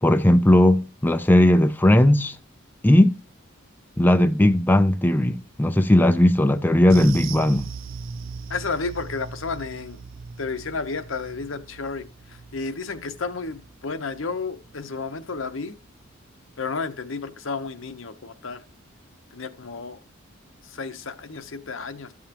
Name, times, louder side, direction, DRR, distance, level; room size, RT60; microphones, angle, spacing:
voice 1, 0.0-2.4 2.8-3.2 4.0-7.7, left 1 dB, 10° left, 0.4 m, -17 dB
sound 1, 6.9-15.6 15.8-16.1 16.5-16.6, right 4 dB, 70° right, 0.6 m, -38 dB
voice 2, 8.5-10.0 10.4-15.8 16.6-18.6 19.3-20.0 20.6-22.1, left 4 dB, 65° left, 0.9 m, -32 dB
12.5 x 7.3 x 2.9 m
head